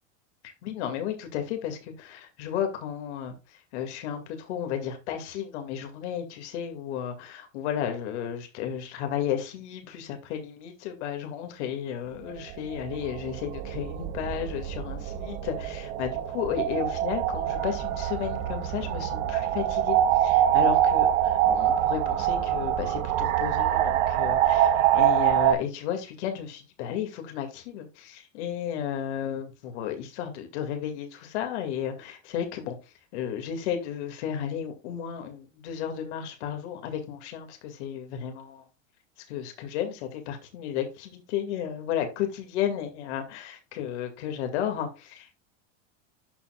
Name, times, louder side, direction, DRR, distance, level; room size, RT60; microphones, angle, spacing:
voice 1, 0.6-3.4 3.7-32.8 33.1-38.6 39.3-45.3, left 9 dB, 75° left, 2.2 m, -33 dB
sound 1, 12.3-25.5, right 11 dB, 55° right, 1.4 m, -25 dB
13.0 x 4.5 x 2.3 m
supercardioid pair, 150°, 35 cm